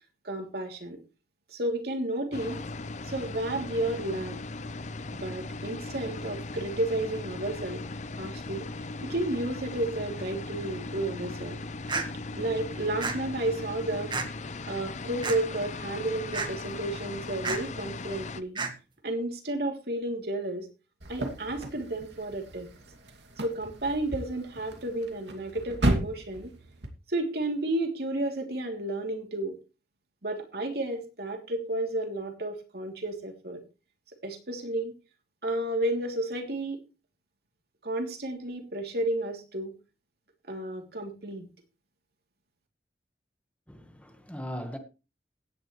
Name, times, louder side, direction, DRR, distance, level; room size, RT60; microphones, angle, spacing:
voice 1, 0.2-1.0 1.5-2.6 3.0-4.4 5.1-7.8 8.2-8.7 9.0-11.6 12.3-14.1 14.7-18.6 19.0-20.7 21.1-22.7 23.4-26.5 27.1-29.6 30.2-33.6 34.2-34.9 35.4-36.8 37.8-39.7 40.5-41.5, right 1 dB, 60° right, 3.0 m, -32 dB
sound 1, 2.3-18.4, left 3 dB, 40° left, 0.7 m, -38 dB
sound 2, 11.9-12.1 13.0-13.2 14.1-14.3 15.2-15.4 16.3-16.5 17.4-17.6 18.5-18.7, right 4 dB, 25° right, 1.7 m, -30 dB
sound 3, 21.0-26.9, right 1 dB, 85° right, 2.6 m, -34 dB
voice 2, 43.7-44.8, equal, 10° left, 1.4 m, -39 dB
16.5 x 10.0 x 3.2 m
head